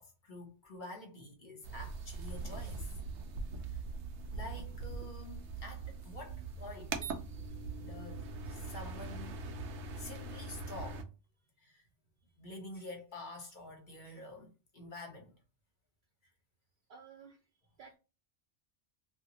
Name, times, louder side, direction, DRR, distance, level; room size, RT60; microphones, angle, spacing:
voice 1, 0.0-2.9 3.6-3.8 4.3-7.1 7.8-9.4 10.0-11.1 11.6-11.9 12.4-15.3 16.2-16.3, left 2 dB, 45° left, 0.9 m, -48 dB
sound 1, 1.6-11.0, right 3 dB, 75° right, 0.9 m, -42 dB
voice 2, 16.9-17.5 17.8-18.0, right 6 dB, 55° right, 0.6 m, -56 dB
2.9 x 2.4 x 2.8 m
omnidirectional pair, 1.2 m